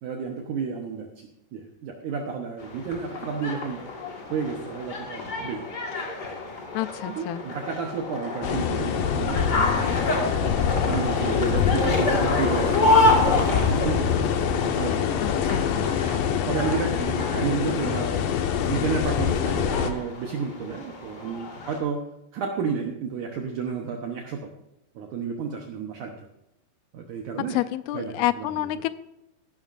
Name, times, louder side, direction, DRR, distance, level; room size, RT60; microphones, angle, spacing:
voice 1, 0.0-3.8 4.3-5.6 7.1-10.1 10.8-14.2 14.6-15.5 16.1-18.1 18.7-22.1 22.3-24.5 25.0-26.3 26.9-27.6 27.9-28.7, right 6 dB, 65° right, 2 dB, 2.1 m, -31 dB
sound 1, 2.6-21.8, left 2 dB, 40° left, 1.5 m, -28 dB
voice 2, 6.7-7.4 15.2-15.7 27.5-28.9, left 15 dB, 90° left, 14 dB, 2.5 m, -28 dB
sound 2, 8.4-19.9, left 8 dB, 75° left, 2.4 m, -25 dB
14.5 x 12.5 x 2.6 m, 0.90 s
omnidirectional pair, 4.4 m